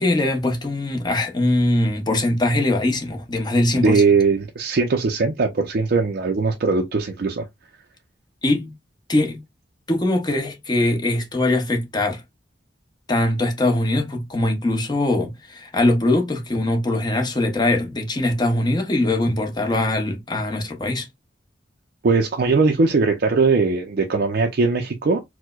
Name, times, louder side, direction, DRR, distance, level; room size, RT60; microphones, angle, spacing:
voice 1, 0.0-4.0 8.4-8.7 9.1-9.4 9.9-12.2 13.1-21.1, left 1 dB, 25° left, 0.7 m, -21 dB
voice 2, 3.7-7.4 22.0-25.2, right 4 dB, 55° right, 0.4 m, -20 dB
4.4 x 2.1 x 2.2 m
head